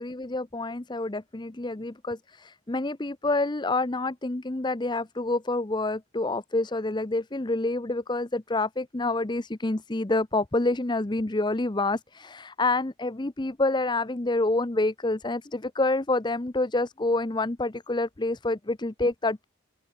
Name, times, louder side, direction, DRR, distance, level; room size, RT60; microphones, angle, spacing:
voice 1, 0.0-19.4, left 2 dB, 20° left, 0.7 m, -28 dB
open air
head